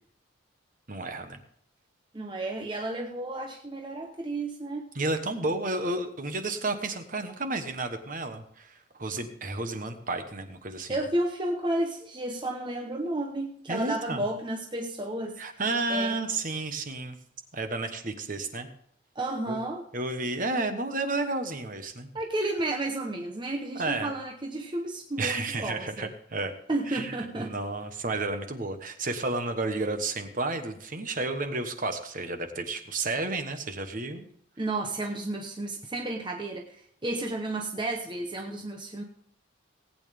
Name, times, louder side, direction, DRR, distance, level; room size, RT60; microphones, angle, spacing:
voice 1, 0.9-1.4 4.9-11.0 13.7-14.2 15.4-17.2 17.5-18.7 19.5-19.6 19.9-22.1 23.8-24.1 25.2-26.5 26.9-34.3, right 2 dB, 40° right, 7 dB, 1.2 m, -31 dB
voice 2, 2.1-4.8 10.9-15.4 15.9-16.2 19.2-19.8 22.1-26.1 26.7-27.6 34.6-39.0, right 2 dB, 25° right, 2 dB, 0.9 m, -32 dB
18.5 x 8.9 x 3.5 m, 0.66 s
head